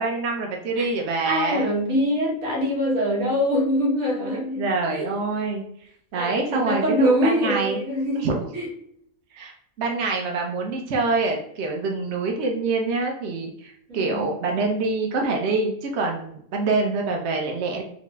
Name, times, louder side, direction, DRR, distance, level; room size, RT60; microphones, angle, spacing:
voice 1, 0.0-1.7 4.2-5.6 6.1-7.8 8.1-8.5 9.3-17.8, right 3 dB, 60° right, 1 dB, 0.9 m, -26 dB
voice 2, 1.2-5.2 6.1-8.2 8.5-8.7 13.9-14.3, equal, 80° right, -3 dB, 1.6 m, -24 dB
4.0 x 2.0 x 3.3 m, 0.68 s
omnidirectional pair, 1.4 m